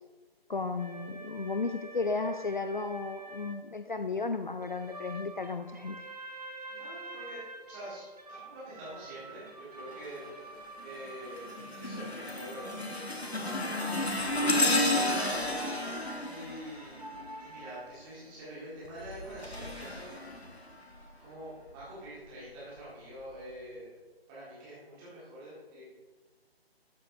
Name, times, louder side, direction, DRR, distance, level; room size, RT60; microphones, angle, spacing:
voice 1, 0.5-6.1, left 3 dB, 50° left, 9 dB, 0.5 m, -34 dB
sound 1, 0.8-3.6 4.6-17.8, right 2 dB, 40° right, 0.9 m, -47 dB
voice 2, 6.7-10.3 10.8-11.5 11.7-14.3 14.7-15.5 16.2-17.0 17.4-20.1 21.2-23.9 24.3-25.9, right 1 dB, 10° right, -9 dB, 1.9 m, -45 dB
sound 2, 9.9-10.3 10.8-17.6 18.8-21.1 21.7-21.9 22.8-22.9, left 1 dB, 85° left, 1.4 m, -32 dB
13.0 x 8.5 x 2.7 m, 1.3 s
figure-of-eight pair, 155°, 31 cm